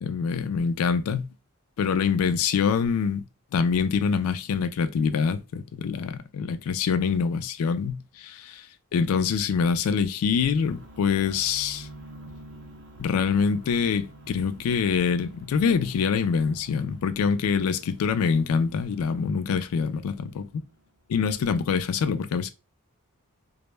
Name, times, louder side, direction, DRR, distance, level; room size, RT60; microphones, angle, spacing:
voice 1, 0.0-1.3 1.8-3.2 3.5-8.7 8.9-11.9 13.0-20.5 21.1-22.5, left 6 dB, 75° left, 0.3 m, -25 dB
sound 1, 10.6-20.8, right 1 dB, 50° right, 0.5 m, -48 dB
2.1 x 2.0 x 3.1 m
head